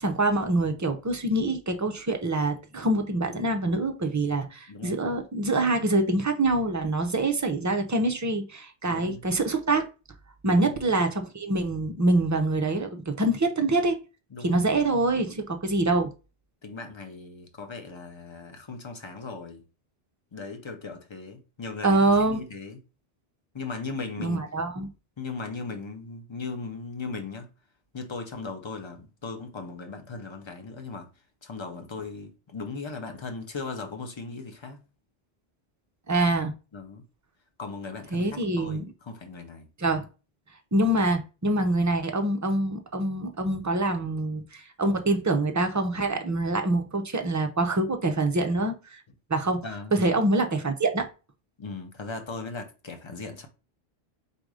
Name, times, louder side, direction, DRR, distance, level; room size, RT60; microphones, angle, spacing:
voice 1, 0.0-9.9 10.4-14.0 14.4-16.1 21.8-22.4 24.2-24.9 36.1-36.5 38.1-38.8 39.8-40.0 40.7-49.0 49.3-49.6 49.9-51.1, right 2 dB, 25° right, 0.4 m, -25 dB
voice 2, 8.8-9.2 10.5-10.7 14.3-14.6 16.6-19.6 20.3-22.8 23.5-24.4 25.2-27.5 27.9-31.1 31.4-34.8 36.7-37.0 37.6-39.7 49.6-50.0 51.6-53.5, left 4 dB, 30° left, 0.7 m, -38 dB
4.1 x 2.6 x 4.7 m
omnidirectional pair, 1.1 m